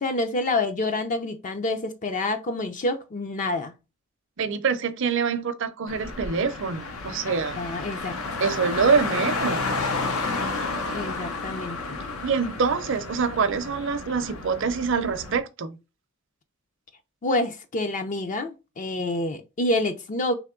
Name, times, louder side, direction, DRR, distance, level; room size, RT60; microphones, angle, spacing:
voice 1, 0.0-3.7 7.3-8.1 10.9-12.0 17.2-20.3, left 2 dB, 35° left, 0.4 m, -28 dB
voice 2, 4.4-7.6 8.4-9.9 12.2-15.8, right 5 dB, 60° right, 0.5 m, -25 dB
Car, 5.9-15.4, left 3 dB, 90° left, 0.8 m, -31 dB
3.5 x 2.9 x 3.6 m
head